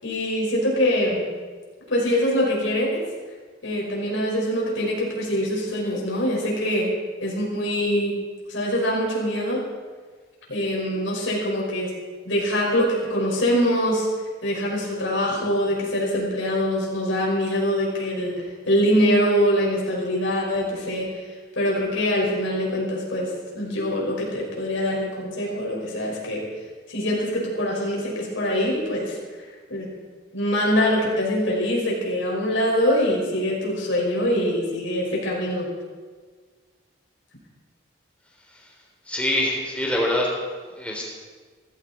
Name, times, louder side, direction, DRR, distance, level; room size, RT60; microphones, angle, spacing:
voice 1, 0.0-1.2 1.9-3.0 3.6-6.9 7.2-8.2 8.5-9.6 10.5-11.9 12.3-14.1 14.4-21.2 21.6-26.4 26.9-29.9 30.3-35.7, equal, 90° left, -3 dB, 5.4 m, -24 dB
voice 2, 39.1-40.3 40.8-41.2, left 1 dB, 5° left, -2 dB, 3.3 m, -24 dB
17.5 x 15.5 x 4.3 m, 1.5 s
head